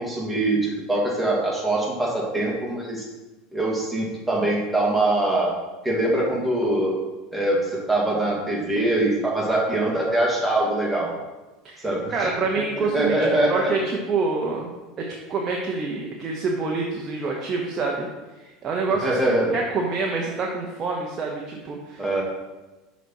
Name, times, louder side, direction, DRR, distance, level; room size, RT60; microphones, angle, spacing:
voice 1, 0.0-3.1 3.5-7.0 7.3-11.1 11.8-12.3 12.8-13.7 19.0-19.5 22.0-22.2, right 1 dB, 5° right, -4 dB, 2.0 m, -23 dB
voice 2, 11.6-13.2 13.5-18.1 18.4-19.1 19.5-22.1, right 4 dB, 35° right, -1 dB, 0.9 m, -27 dB
6.0 x 4.1 x 4.6 m, 1.1 s
hypercardioid pair, 85°, 0 cm